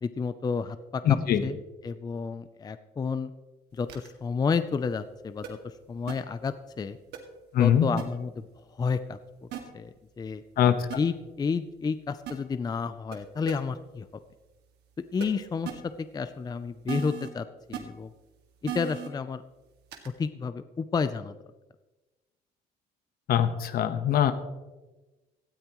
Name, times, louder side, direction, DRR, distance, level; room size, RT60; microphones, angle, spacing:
voice 1, 0.0-1.0 1.4-1.6 1.8-3.3 3.7-5.6 5.9-7.0 7.6-8.3 8.7-9.2 9.7-10.4 11.0-14.1 15.1-18.1 18.6-19.4 20.2-21.3, left 5 dB, 25° left, 11 dB, 0.5 m, -31 dB
voice 2, 1.0-1.4 7.5-7.9 10.6-10.9 23.3-24.3, left 9 dB, 65° left, 10 dB, 1.2 m, -22 dB
sound 1, 3.9-4.1 5.4-5.5 6.1-6.2 7.1-7.2 8.0-8.1 9.5-9.6 10.9-11.0 12.3-12.4 13.1-13.2 13.5-13.6 15.2-15.3 15.6-15.7 16.9-17.3 17.7-17.8 18.7-19.1 19.9-20.1, right 10 dB, 80° right, 2.0 m, -35 dB
18.0 x 13.0 x 3.1 m, 1.1 s
cardioid pair, 110°, 17 cm